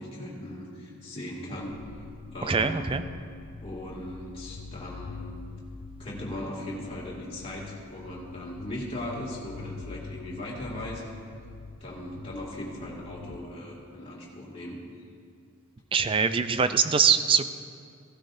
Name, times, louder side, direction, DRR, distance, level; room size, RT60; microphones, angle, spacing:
voice 1, 0.0-1.8 2.3-3.0 3.6-5.4 6.0-11.1 11.8-14.8, left 1 dB, 25° left, -5 dB, 2.2 m, -38 dB
sound 1, 1.6-13.4, left 4 dB, 45° left, 0.4 m, -45 dB
voice 2, 2.4-3.0 15.9-17.5, right 6 dB, 25° right, 10 dB, 0.3 m, -23 dB
16.5 x 12.5 x 2.6 m, 2.3 s
head